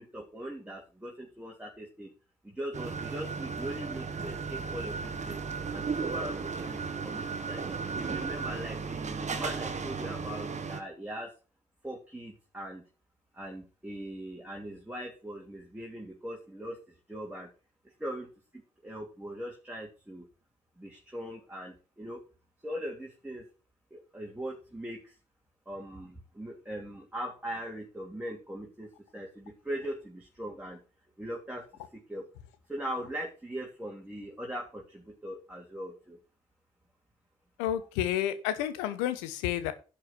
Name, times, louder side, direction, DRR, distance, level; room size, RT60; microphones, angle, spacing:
voice 1, 0.0-2.1 2.4-5.4 5.7-7.6 7.9-11.3 11.8-12.8 13.3-17.5 18.0-20.3 20.8-22.2 22.6-23.5 23.9-25.1 25.7-30.8 31.2-31.6 31.9-32.2 32.7-36.2, equal, 10° right, -2 dB, 3.0 m, -40 dB
sound 1, 2.7-10.8, right 5 dB, 35° right, 1.6 m, -35 dB
voice 2, 37.6-39.7, left 11 dB, 75° left, 12 dB, 1.0 m, -30 dB
10.5 x 5.0 x 6.2 m, 0.34 s
figure-of-eight pair, 40°, 20 cm